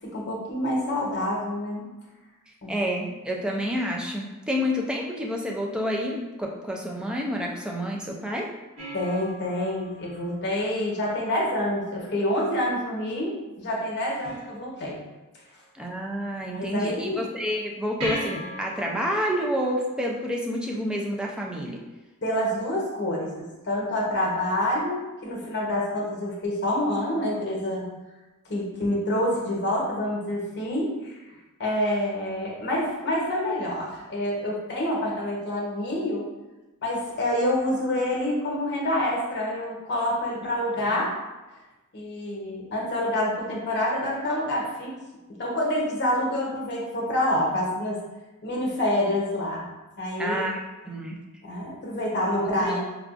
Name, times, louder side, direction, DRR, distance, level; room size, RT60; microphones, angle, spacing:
voice 1, 0.0-1.9 2.6-2.7 8.9-15.0 16.4-17.2 22.2-27.9 28.5-31.1 31.6-36.2 36.8-41.1 41.9-44.9 45.3-48.0 48.4-49.7 50.0-50.5 51.4-52.8, left 1 dB, 50° left, -3 dB, 0.9 m, -27 dB
voice 2, 2.7-8.5 15.7-21.8 40.9-41.0 50.2-51.2 52.4-52.8, equal, 5° right, -1 dB, 0.3 m, -29 dB
sound 1, 8.8-11.4 14.2-15.2 18.0-20.9 24.0-24.1, equal, 80° right, 1.4 m, -39 dB
4.6 x 2.3 x 2.4 m, 1.1 s
head